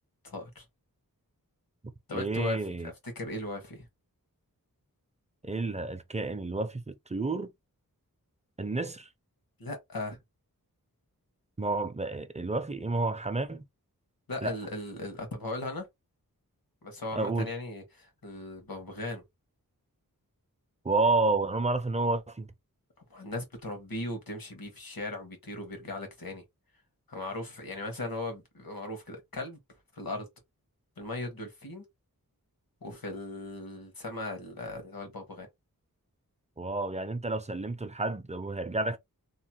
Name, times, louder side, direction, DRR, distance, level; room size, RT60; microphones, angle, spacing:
voice 1, 0.2-0.6 2.1-2.6 2.8-3.9 9.6-10.2 14.3-15.9 16.8-19.2 23.1-26.4 27.1-29.6 29.9-30.3 31.0-31.8 32.8-35.5, left 2 dB, 75° left, 1.3 m, -38 dB
voice 2, 2.1-2.9 5.4-7.5 8.6-9.1 11.6-13.6 14.4-14.6 17.1-17.5 20.8-22.5 36.6-39.0, right 3 dB, 20° right, 0.5 m, -30 dB
3.0 x 2.1 x 2.9 m
wide cardioid pair, 65°, 35 cm